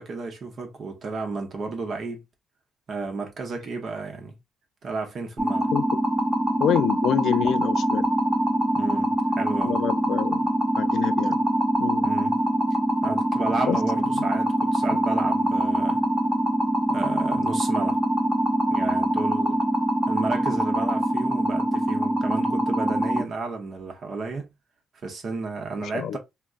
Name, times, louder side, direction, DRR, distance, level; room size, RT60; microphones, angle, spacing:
voice 1, 0.0-2.2 2.9-4.4 4.8-5.7 8.7-9.8 12.0-12.4 13.0-16.0 16.9-18.0 18.7-19.6 20.1-24.5 25.0-26.2, right 3 dB, 50° right, 0.8 m, -32 dB
sound 1, 5.4-23.2, right 1 dB, 15° right, 0.9 m, -24 dB
voice 2, 6.6-8.0 9.6-10.5 10.8-11.4 11.8-12.1 13.7-13.8 14.2-14.3 25.8-26.2, left 10 dB, 75° left, 0.3 m, -26 dB
3.4 x 2.1 x 2.4 m
cardioid pair, 90°, 0 cm